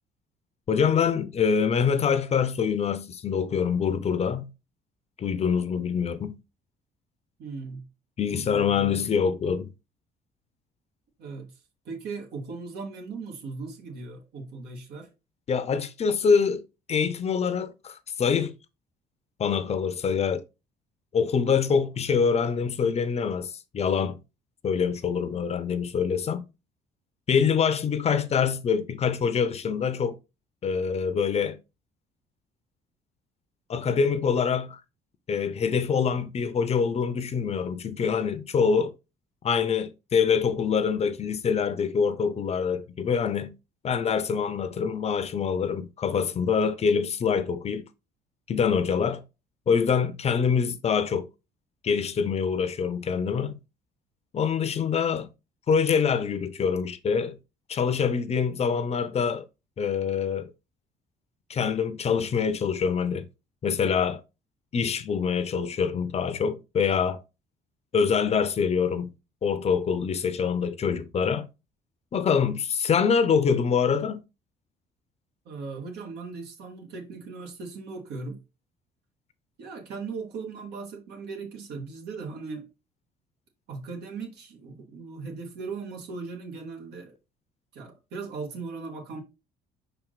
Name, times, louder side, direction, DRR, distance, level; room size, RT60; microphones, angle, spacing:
voice 1, 0.7-4.5 5.2-6.4 8.2-9.7 15.5-16.6 16.9-18.6 19.4-20.4 21.1-24.2 24.6-26.4 27.3-30.2 30.6-31.6 33.7-34.8 35.3-38.9 39.4-43.5 43.8-47.8 48.5-49.2 49.7-51.3 51.8-53.6 54.3-55.3 55.7-57.4 57.7-59.5 59.8-60.5 61.5-63.3 63.6-64.2 64.7-67.2 67.9-69.1 69.4-71.5 72.1-74.2, left 6 dB, 40° left, 0.7 m, -25 dB
voice 2, 7.4-7.8 8.3-9.1 11.2-11.5 11.8-15.1 75.5-78.4 79.6-82.7 83.7-87.1 87.7-89.2, right 4 dB, 75° right, 2.1 m, -38 dB
5.4 x 4.5 x 4.0 m
cardioid pair, 110°, 17 cm